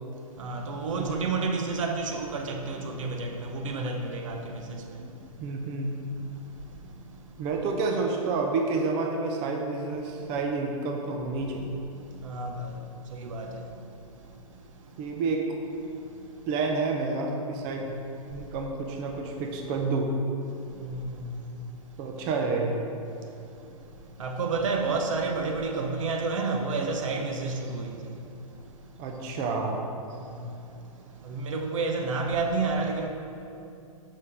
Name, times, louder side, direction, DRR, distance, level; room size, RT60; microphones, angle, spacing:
voice 1, 0.4-4.6 12.2-12.7 13.1-13.5 20.8-21.2 24.2-27.9 31.2-33.1, right 3 dB, 60° right, 1.0 m, -30 dB
voice 2, 5.0-6.0 7.4-11.7 15.0-15.5 16.5-17.9 18.3-20.1 22.0-22.8 29.0-29.8, right 3 dB, 30° right, 0.8 m, -29 dB
12.0 x 5.5 x 3.6 m
figure-of-eight pair, 115°, 19 cm